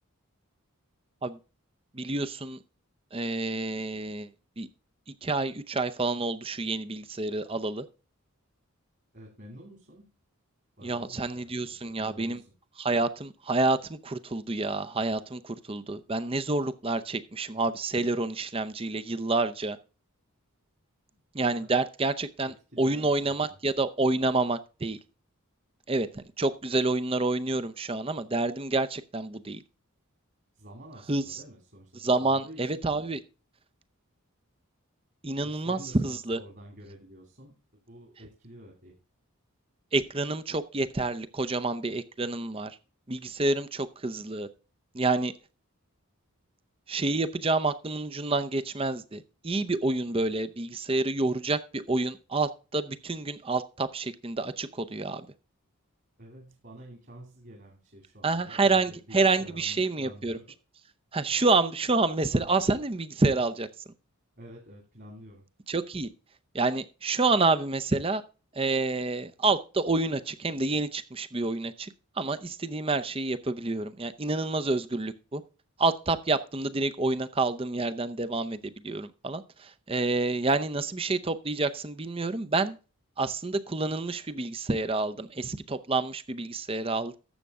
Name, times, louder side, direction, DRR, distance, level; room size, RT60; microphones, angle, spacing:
voice 1, 1.9-2.6 3.1-4.3 4.6-4.7 5.2-7.8 10.8-12.4 12.8-19.8 21.3-25.0 25.9-29.6 31.1-31.4 32.0-33.2 35.2-36.4 39.9-42.8 43.1-44.5 44.9-45.3 46.9-55.3 58.2-60.4 61.1-63.7 65.7-66.1 66.5-68.2 68.5-75.4 75.8-82.8 83.2-87.1, right 3 dB, 25° right, 12 dB, 0.6 m, -28 dB
voice 2, 9.1-10.1 10.8-12.5 21.1-21.2 21.6-21.7 22.5-23.6 30.6-32.8 35.4-37.5 37.9-38.9 56.2-60.4 61.2-61.3 64.4-65.4, right 1 dB, 45° right, 1 dB, 2.7 m, -49 dB
12.5 x 7.5 x 3.6 m, 0.33 s
head